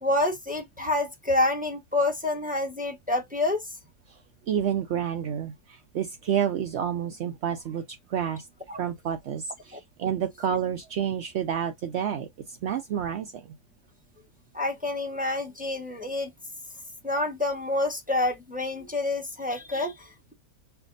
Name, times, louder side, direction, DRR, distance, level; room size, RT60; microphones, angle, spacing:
voice 1, 0.0-3.6 8.7-8.8 9.7-9.8 14.5-16.3 17.0-20.3, left 2 dB, 10° right, 0.5 m, -28 dB
voice 2, 4.5-8.5 8.8-13.5, right 8 dB, 65° right, 0.6 m, -29 dB
5.7 x 2.2 x 3.8 m
omnidirectional pair, 1.8 m